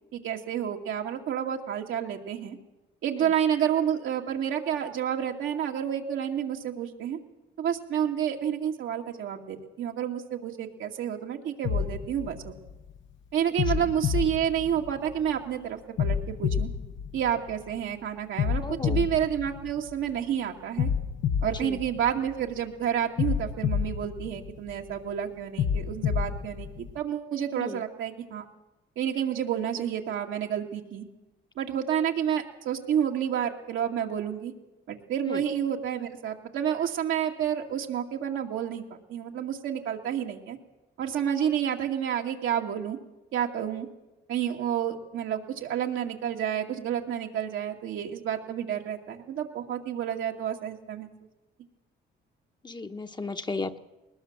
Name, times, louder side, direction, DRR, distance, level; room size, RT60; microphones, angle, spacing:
voice 1, 0.1-2.6 3.0-7.2 7.6-12.5 13.3-16.7 17.1-20.9 21.4-28.4 29.0-31.1 31.6-34.5 34.9-40.6 41.0-43.0 43.3-43.9 44.3-51.1, right 9 dB, 85° right, 1 dB, 2.3 m, -30 dB
sound 1, 11.6-13.0 13.6-15.3 16.0-17.8 18.4-20.2 20.8-22.6 23.2-24.9 25.6-27.0, left 7 dB, 75° left, 1.1 m, -29 dB
voice 2, 18.5-19.1 21.5-21.8 27.5-27.8 35.3-35.4 52.6-53.8, left 3 dB, 20° left, 7 dB, 1.1 m, -35 dB
20.5 x 20.0 x 7.4 m, 1.0 s
cardioid pair, 90°, 20 cm